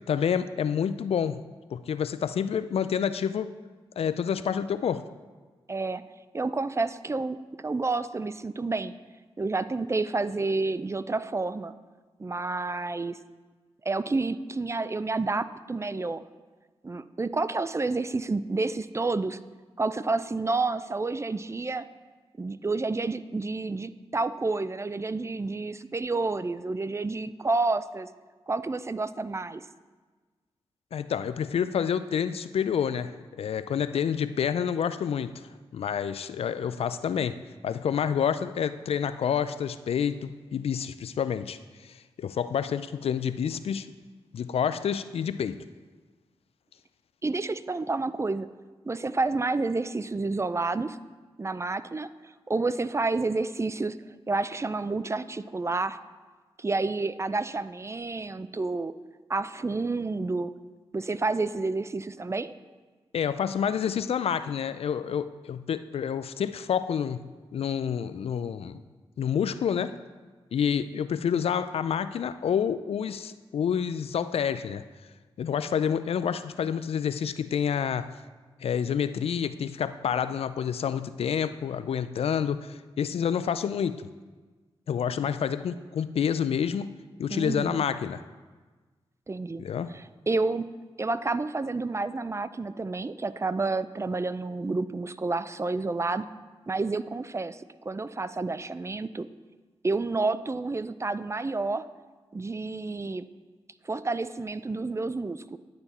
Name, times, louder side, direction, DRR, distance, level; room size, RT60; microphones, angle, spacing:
voice 1, 0.1-1.4 1.7-3.5 4.0-5.0 30.9-43.9 44.3-45.6 63.1-68.8 69.2-69.9 70.5-74.8 75.4-78.1 78.6-84.1 84.9-88.2 89.6-89.9, left 8 dB, 75° left, 13 dB, 0.4 m, -28 dB
voice 2, 5.7-6.0 6.3-8.9 9.4-11.7 12.2-13.2 13.8-16.2 16.8-19.4 19.8-21.9 22.4-28.1 28.5-29.6 47.2-48.5 48.9-51.0 51.4-52.1 52.5-54.0 54.3-56.0 56.6-58.9 59.3-60.5 60.9-62.5 87.3-87.9 89.3-89.6 89.9-90.7 91.0-96.2 96.7-99.3 99.8-101.9 102.3-103.3 103.8-105.6, right 3 dB, 25° right, 14 dB, 0.4 m, -29 dB
10.5 x 6.9 x 4.2 m, 1.4 s
cardioid pair, 50°, 10 cm